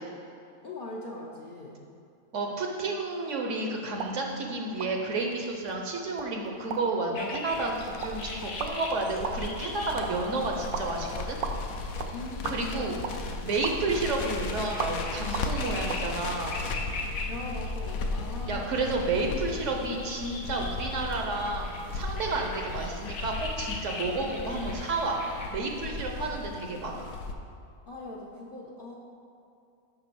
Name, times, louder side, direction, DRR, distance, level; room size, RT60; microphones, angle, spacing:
voice 1, 0.6-1.8 12.1-13.1 17.3-18.8 27.9-28.9, left 2 dB, 50° left, -3 dB, 0.7 m, -41 dB
voice 2, 2.3-11.4 12.5-13.0 13.4-16.6 18.5-25.2 25.5-27.1, right 3 dB, 60° right, 2 dB, 1.0 m, -31 dB
sound 1, 3.9-16.1, right 5 dB, 85° right, 0.5 m, -40 dB
sound 2, 7.1-25.5, left 3 dB, 85° left, 1.4 m, -42 dB
Crackle, 7.5-27.3, left 3 dB, 70° left, 1.0 m, -36 dB
6.1 x 5.2 x 6.7 m, 2.5 s
omnidirectional pair, 1.6 m